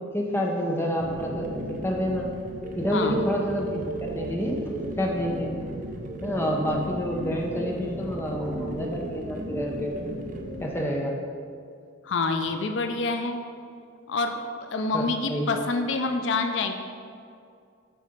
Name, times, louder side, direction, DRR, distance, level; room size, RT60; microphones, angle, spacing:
voice 1, 0.1-2.3 2.7-4.6 5.0-5.5 6.2-9.9 10.6-11.1 14.9-15.5, equal, 10° left, -1 dB, 0.8 m, -28 dB
sound 1, 1.0-10.7, right 1 dB, 45° right, 0.7 m, -35 dB
voice 2, 12.0-13.4 14.1-14.4 14.7-16.7, left 3 dB, 70° left, 6 dB, 0.5 m, -27 dB
7.7 x 4.2 x 5.1 m, 2.3 s
head